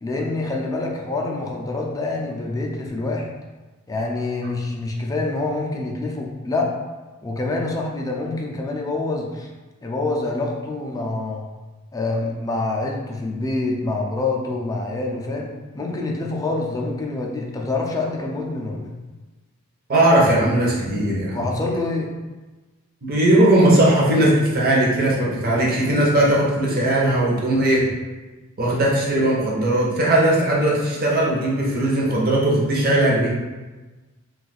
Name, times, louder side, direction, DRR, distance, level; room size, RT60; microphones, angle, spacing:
voice 1, 0.0-3.3 3.9-6.7 7.2-9.5 9.8-11.5 11.9-18.9 21.3-22.1, left 2 dB, 15° left, -1 dB, 0.4 m, -26 dB
voice 2, 19.9-21.4 23.0-27.9 28.6-33.3, right 1 dB, 45° right, -4 dB, 0.7 m, -18 dB
2.5 x 2.3 x 4.0 m, 1.2 s
head